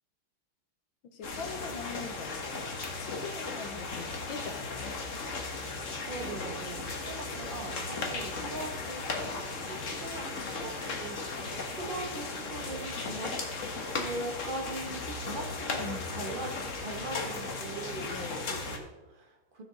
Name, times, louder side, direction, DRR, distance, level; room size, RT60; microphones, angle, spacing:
voice 1, 1.0-2.6 3.0-5.0 7.9-8.2 15.8-16.1 18.1-18.4, left 5 dB, 65° left, 6 dB, 1.8 m, -42 dB
sound 1, 1.2-18.8, left 3 dB, 40° left, 1.4 m, -36 dB
voice 2, 6.1-13.3 13.9-19.6, right 2 dB, 35° right, 3 dB, 0.9 m, -41 dB
15.5 x 6.3 x 3.9 m, 1.1 s
omnidirectional pair, 2.4 m